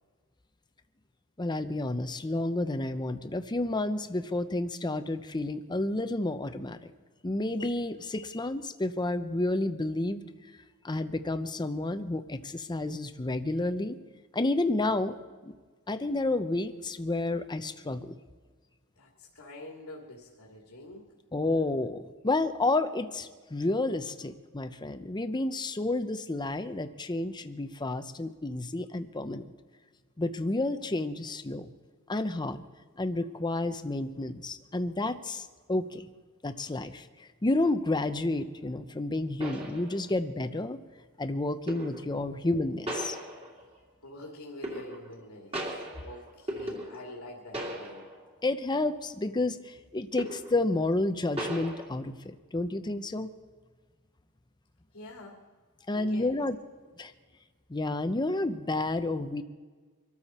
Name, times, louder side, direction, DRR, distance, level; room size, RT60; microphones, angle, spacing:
voice 1, 1.4-6.9 7.2-10.2 10.8-14.0 14.3-15.2 15.4-15.6 15.9-18.1 21.3-29.4 30.2-31.7 32.1-32.6 33.0-36.1 36.4-40.8 41.2-43.2 48.4-53.3 55.9-56.6 57.0-57.1 57.7-59.4, left 2 dB, 20° left, 9 dB, 0.7 m, -30 dB
voice 2, 19.0-21.1 44.0-45.7 46.0-48.1 54.9-55.4 55.9-56.3, left 1 dB, 85° left, -1 dB, 2.4 m, -46 dB
sound 1, 38.8-38.9 39.4-40.3 41.7-42.2 42.9-43.8 44.6-45.2 45.5-47.3 47.5-48.3 48.7-48.9 50.2-50.7 51.4-51.8, right 1 dB, 25° right, 2.8 m, -37 dB
24.5 x 13.0 x 4.3 m, 1.4 s
head